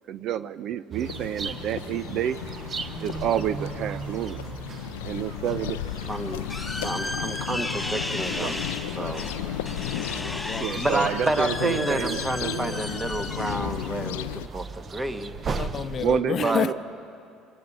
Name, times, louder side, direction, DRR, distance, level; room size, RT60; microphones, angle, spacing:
voice 1, 0.1-2.4 3.0-4.4 5.0-5.8 8.3-8.5 10.6-12.8 14.5-14.6 16.0-16.7, right 10 dB, 55° right, 0.5 m, -29 dB
sound 1, 0.9-16.2, right 5 dB, 35° right, 0.9 m, -38 dB
sound 2, 1.0-14.5, left 13 dB, 80° left, 0.4 m, -34 dB
sound 3, 5.9-15.0, left 1 dB, 5° left, 2.8 m, -35 dB
voice 2, 6.0-6.4 6.8-8.6 9.0-9.3 10.8-15.3 16.4-16.7, right 2 dB, 20° right, 1.5 m, -29 dB
voice 3, 10.2-10.7 15.6-16.7, left 8 dB, 45° left, 0.7 m, -29 dB
28.0 x 24.5 x 4.1 m
hypercardioid pair, 65°, 0 cm